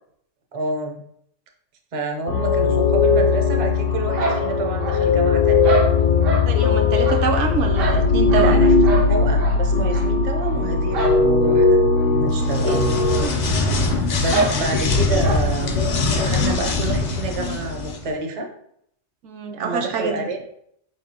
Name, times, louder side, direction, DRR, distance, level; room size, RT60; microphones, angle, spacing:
voice 1, 0.5-1.0 1.9-5.8 8.4-11.8 12.1-13.0 13.8-18.5 19.6-20.4, right 3 dB, 45° right, 2 dB, 0.4 m, -29 dB
sound 1, 2.3-13.2, left 4 dB, 75° left, 0.9 m, -18 dB
sound 2, 4.1-5.2 5.6-6.5 7.0-8.6 8.8-9.1 9.4-9.6 9.9-10.0 10.9-11.2 11.5-11.6 12.0-12.1 12.9-13.0 13.3-13.4 14.3-14.6 15.2-15.4, right 3 dB, 90° right, 1.2 m, -25 dB
voice 2, 6.5-9.0 12.4-12.8 13.2-13.3 19.2-20.1, right 5 dB, 75° right, 3 dB, 0.9 m, -26 dB
sound 3, 12.3-18.0, left 3 dB, 55° left, 0.5 m, -22 dB
4.3 x 3.3 x 2.8 m, 0.70 s
omnidirectional pair, 1.3 m